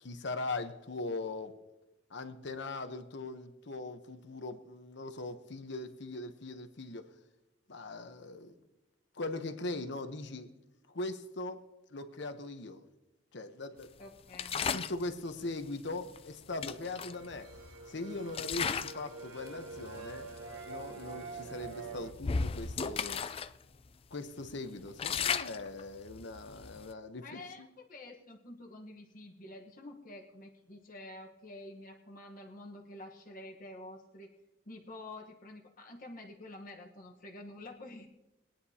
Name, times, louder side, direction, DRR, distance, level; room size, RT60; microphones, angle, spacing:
voice 1, 0.0-1.5 2.1-7.1 7.7-8.5 9.1-10.5 10.9-11.6 11.9-12.8 13.3-13.9 14.7-17.5 17.9-20.3 20.7-23.2 24.1-27.7, left 2 dB, 65° left, 0.9 m, -40 dB
voice 2, 14.0-14.6 27.2-34.3 34.6-38.1, left 2 dB, 45° left, 1.2 m, -48 dB
sound 1, 14.3-15.0 16.2-16.3 16.6-17.8 18.3-19.1 19.4-19.7 20.4-20.5 20.8-21.0 21.6-23.5 23.8-23.9 24.4-26.9, left 6 dB, 30° left, 0.3 m, -35 dB
sound 2, 16.7-22.1, right 4 dB, 85° right, 1.4 m, -46 dB
21.5 x 10.0 x 2.8 m
head